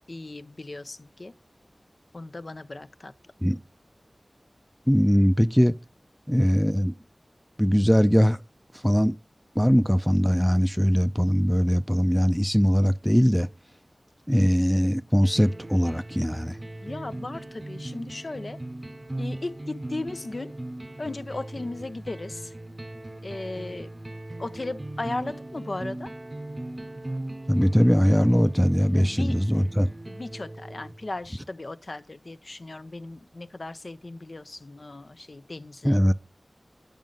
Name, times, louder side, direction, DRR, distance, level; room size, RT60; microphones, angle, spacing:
voice 1, 0.1-1.3 2.1-3.1 16.8-18.6 19.2-20.5 21.0-22.5 23.2-23.9 24.4-26.1 28.9-29.3 30.1-36.0, left 2 dB, 60° left, 0.5 m, -36 dB
voice 2, 4.9-5.8 6.3-6.9 7.6-8.4 8.8-9.2 9.6-13.5 14.3-16.6 27.5-29.9 35.8-36.1, equal, ahead, 0.5 m, -21 dB
sound 1, 15.2-31.2, right 1 dB, 40° right, 0.7 m, -38 dB
9.1 x 5.2 x 3.7 m
wide cardioid pair, 50°, 0 cm